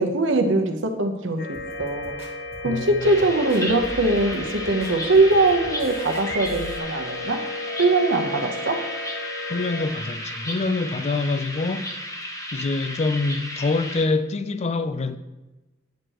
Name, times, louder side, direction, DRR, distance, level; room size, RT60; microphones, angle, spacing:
voice 1, 0.0-2.2 2.6-7.4 7.8-8.8, right 2 dB, 70° right, 0.9 m, -22 dB
sound 1, 1.4-9.8, left 2 dB, 60° left, 1.5 m, -34 dB
sound 2, 1.5-6.8, right 1 dB, 10° right, 1.4 m, -42 dB
voice 2, 2.6-3.2 9.5-11.9 12.5-15.2, left 3 dB, 35° left, 0.4 m, -25 dB
sound 3, 3.0-14.1, left 1 dB, 15° left, 0.8 m, -34 dB
9.4 x 6.4 x 3.0 m
head